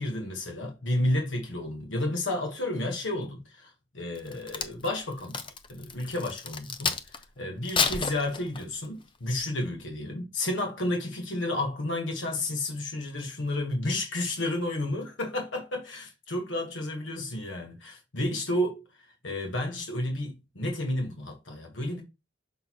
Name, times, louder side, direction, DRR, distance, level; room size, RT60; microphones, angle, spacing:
voice 1, 0.0-5.4 5.7-18.8 19.2-22.0, left 1 dB, 75° left, 1.4 m, -31 dB
Crack, 4.1-7.2 7.6-8.9 9.4-9.6, left 5 dB, 25° left, 0.6 m, -31 dB
6.4 x 6.1 x 3.0 m
head